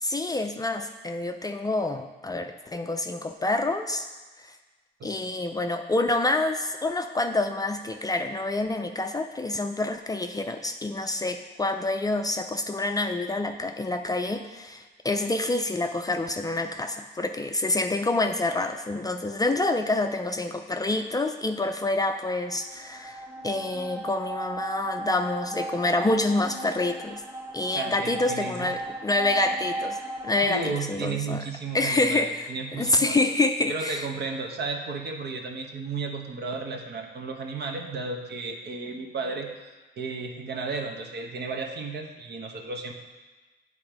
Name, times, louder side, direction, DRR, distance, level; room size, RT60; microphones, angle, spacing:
voice 1, 0.0-4.1 4.4-4.5 5.0-27.2 27.5-31.4 31.7-34.1, left 2 dB, 20° left, 5 dB, 0.4 m, -27 dB
sound 1, 22.5-30.6, right 1 dB, 10° right, 0.9 m, -35 dB
voice 2, 27.7-28.7 30.5-32.2 32.5-33.2 33.7-39.5 40.0-42.9, right 4 dB, 55° right, 3 dB, 1.0 m, -33 dB
8.5 x 3.5 x 4.9 m, 1.3 s
cardioid pair, 90°, 20 cm